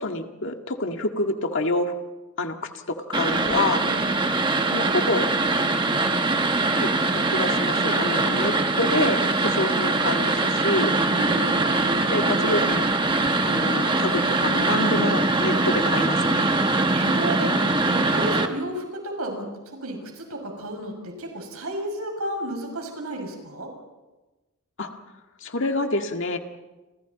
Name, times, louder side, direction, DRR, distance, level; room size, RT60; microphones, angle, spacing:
voice 1, 0.0-1.9 2.4-3.9 4.7-5.3 6.8-6.9 7.3-11.0 12.1-12.9 13.4-16.5 24.8-24.9 25.4-26.4, left 2 dB, 60° left, 4 dB, 2.0 m, -27 dB
sound 1, 3.1-18.5, right 2 dB, 20° right, 1.3 m, -22 dB
voice 2, 11.1-12.1 16.5-17.5 17.8-23.7, right 1 dB, 80° right, 2 dB, 6.3 m, -32 dB
30.0 x 28.0 x 4.2 m, 1.1 s
head